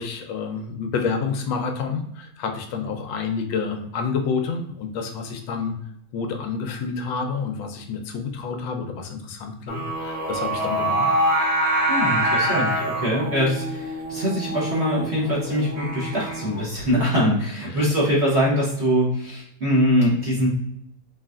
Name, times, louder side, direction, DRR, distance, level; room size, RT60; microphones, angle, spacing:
voice 1, 0.0-5.8 6.1-11.1 17.7-17.9, left 5 dB, 80° left, 5 dB, 1.3 m, -29 dB
Singing, 9.7-16.8, right 1 dB, 90° right, 1.9 m, -25 dB
voice 2, 11.9-20.5, equal, 45° right, -6 dB, 1.0 m, -23 dB
4.3 x 3.2 x 2.4 m, 0.78 s
omnidirectional pair, 2.1 m